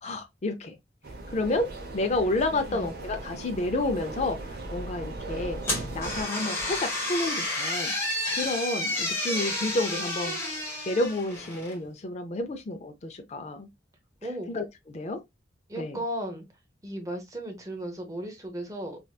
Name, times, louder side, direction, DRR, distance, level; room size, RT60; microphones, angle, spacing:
voice 1, 0.0-0.7 1.3-1.7 1.9-5.6 5.9-7.9 8.3-10.6 10.9-13.7 14.5-15.2 15.8-16.0, left 2 dB, 35° left, 0.4 m, -30 dB
sound 1, 1.0-6.2, right 2 dB, 55° right, 0.9 m, -38 dB
voice 2, 2.5-2.9 14.2-14.5 15.7-16.5 16.8-19.0, right 1 dB, 20° right, 0.8 m, -35 dB
sound 2, 5.6-11.8, left 1 dB, 15° left, 1.3 m, -31 dB
3.2 x 2.9 x 2.3 m
head